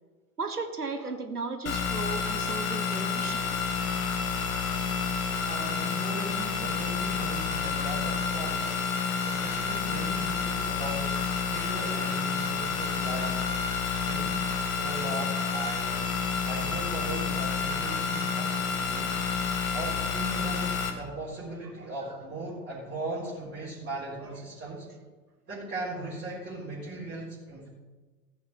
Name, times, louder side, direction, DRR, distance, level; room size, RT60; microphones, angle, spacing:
voice 1, 0.4-3.6 17.0-17.3, right 4 dB, 90° right, 6 dB, 1.3 m, -36 dB
sound 1, 1.7-20.9, left 6 dB, 70° left, 1.8 m, -29 dB
voice 2, 5.4-8.8 9.2-11.2 11.5-13.4 14.0-16.1 16.4-19.2 19.7-24.9 25.5-27.7, right 2 dB, 25° right, -8 dB, 4.0 m, -38 dB
14.5 x 7.0 x 7.2 m, 1.3 s
figure-of-eight pair, 70°, 44 cm